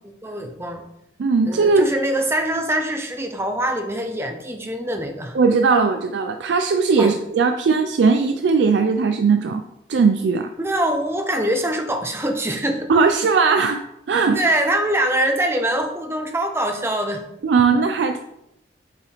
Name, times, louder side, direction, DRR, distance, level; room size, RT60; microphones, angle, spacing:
voice 1, 0.0-0.8 1.4-5.4 7.0-7.1 10.6-12.9 14.3-17.2, right 1 dB, 15° right, 5 dB, 0.7 m, -23 dB
voice 2, 1.2-1.9 5.3-9.6 9.9-10.5 12.9-13.8 14.1-14.4 17.4-18.2, right 4 dB, 85° right, 6 dB, 0.4 m, -18 dB
7.1 x 3.4 x 4.5 m, 0.84 s
head